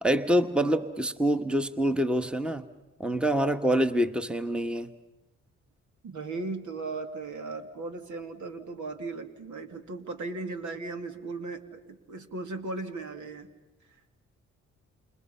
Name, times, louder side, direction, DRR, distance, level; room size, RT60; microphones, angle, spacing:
voice 1, 0.0-2.7 3.0-4.9, right 1 dB, 5° right, 9 dB, 1.4 m, -26 dB
voice 2, 6.0-13.5, right 3 dB, 65° right, 6 dB, 2.7 m, -37 dB
30.0 x 28.5 x 5.7 m, 1.1 s
supercardioid pair, 50°, 31 cm